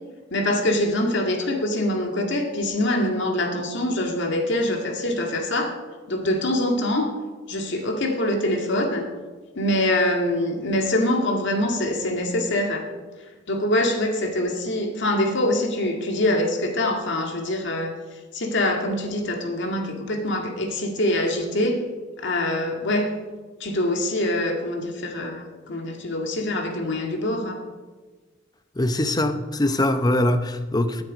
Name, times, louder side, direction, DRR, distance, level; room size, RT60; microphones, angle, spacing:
voice 1, 0.3-5.7 6.1-7.1 7.5-9.0 9.6-12.9 13.5-17.9 18.3-21.8 22.2-23.1 23.6-27.6, left 1 dB, 60° left, 3 dB, 2.1 m, -24 dB
voice 2, 28.8-31.0, left 1 dB, 20° left, 9 dB, 0.8 m, -22 dB
17.0 x 9.5 x 5.2 m, 1.3 s
head